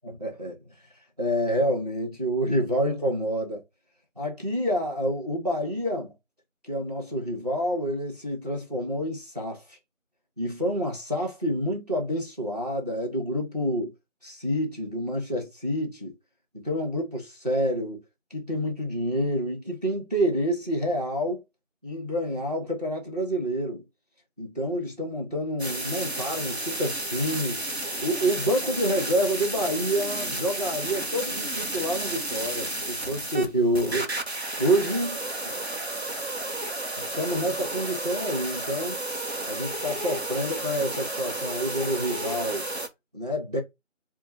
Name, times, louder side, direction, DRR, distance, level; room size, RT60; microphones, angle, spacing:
voice 1, 0.0-0.6 1.2-3.6 4.2-6.1 6.7-9.8 10.4-13.9 14.2-16.1 16.5-18.0 18.3-21.4 21.8-23.8 24.4-27.6 28.0-34.1 34.6-35.2 37.0-39.0 39.5-42.6 43.1-43.6, equal, 30° right, 1.2 m, -28 dB
sound 1, 25.6-42.9, right 2 dB, 55° right, 1.2 m, -32 dB
4.3 x 2.3 x 3.1 m
figure-of-eight pair, 175°, 39 cm